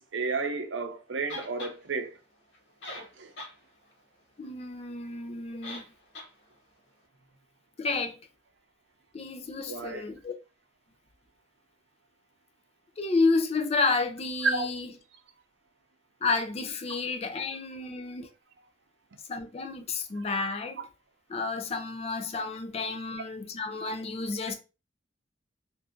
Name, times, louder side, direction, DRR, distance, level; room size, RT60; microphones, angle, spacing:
voice 1, 0.0-2.2 3.2-3.3 9.7-10.0 14.4-14.7 20.2-20.3, right 4 dB, 85° right, 0.6 m, -31 dB
sound 1, 1.3-1.8 2.5-2.6 2.8-3.6 3.9-4.0 5.6-5.9 6.1-6.3, left 2 dB, 70° left, 0.9 m, -40 dB
voice 2, 4.4-5.9 7.8-8.3 9.1-10.3 13.0-14.9 16.2-18.3 19.3-20.8 21.3-24.5, left 3 dB, 35° left, 0.4 m, -30 dB
2.6 x 2.3 x 3.5 m
head